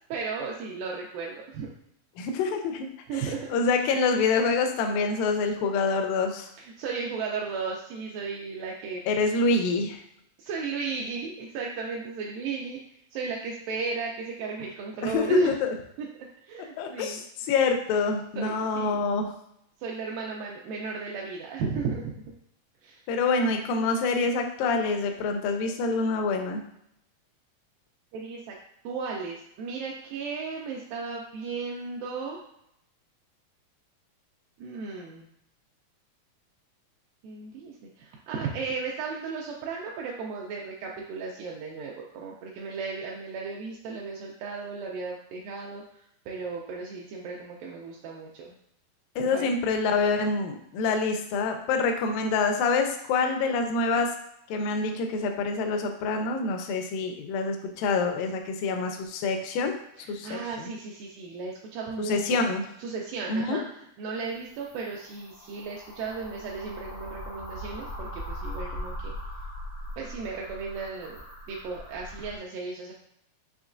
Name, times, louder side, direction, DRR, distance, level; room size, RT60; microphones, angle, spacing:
voice 1, 0.1-1.7 3.1-3.5 6.6-9.1 10.4-12.8 13.1-15.6 16.0-16.1 16.5-17.2 18.4-19.0 19.8-22.1 22.8-23.0 28.1-28.6 28.8-32.4 34.6-35.3 37.2-45.8 46.3-48.5 49.3-49.5 60.0-62.4 62.8-69.1 70.0-71.2 71.5-72.9, right 4 dB, 80° right, -1 dB, 2.1 m, -34 dB
voice 2, 2.2-2.9 3.1-6.5 9.1-10.0 15.0-15.7 16.8-19.3 23.1-26.6 49.2-54.2 54.5-59.7 60.1-60.7 62.0-62.6 63.3-63.6, left 4 dB, 80° left, 4 dB, 2.2 m, -26 dB
sound 1, 64.2-72.4, equal, 65° left, 1.0 m, -40 dB
6.1 x 3.0 x 2.5 m, 0.76 s
omnidirectional pair, 4.2 m